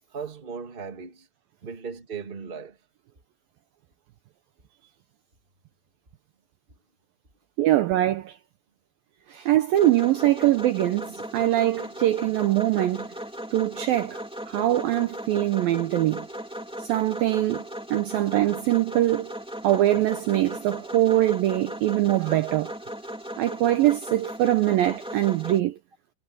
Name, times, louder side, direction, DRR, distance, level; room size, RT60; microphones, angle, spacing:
voice 1, 0.1-1.3 1.6-2.8, right 5 dB, 20° right, 1.5 m, -37 dB
voice 2, 7.6-8.4 9.3-13.1 13.5-16.3 16.8-17.6 17.9-19.3 19.6-22.7 23.4-25.8, right 14 dB, 85° right, 2.0 m, -23 dB
sound 1, 9.7-25.6, equal, ahead, 1.6 m, -37 dB
omnidirectional pair, 5.3 m